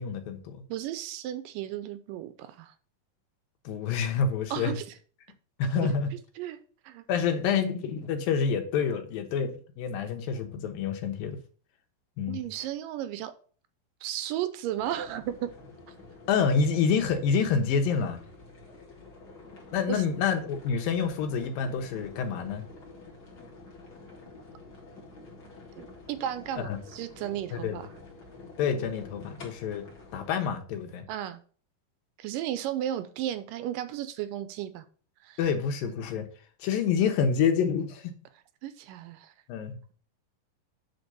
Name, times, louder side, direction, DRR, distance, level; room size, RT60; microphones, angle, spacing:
voice 1, 0.0-0.6 3.6-4.7 5.6-6.1 7.1-11.4 12.2-12.4 16.3-18.2 19.7-22.6 26.6-26.8 27.5-27.8 28.6-29.8 30.1-31.0 35.4-36.3 36.6-38.1 39.5-39.8, left 6 dB, 85° left, 2.9 m, -27 dB
voice 2, 0.7-2.7 4.5-4.8 5.8-5.9 6.4-6.6 6.9-7.1 12.3-13.3 14.0-15.5 19.9-20.0 25.8-27.9 31.1-31.4 32.2-34.8 35.2-35.4 38.6-39.3, right 11 dB, 80° right, 2.3 m, -34 dB
sound 1, 14.8-30.3, left 3 dB, 35° left, 2.2 m, -49 dB
8.0 x 3.9 x 6.7 m
omnidirectional pair, 4.0 m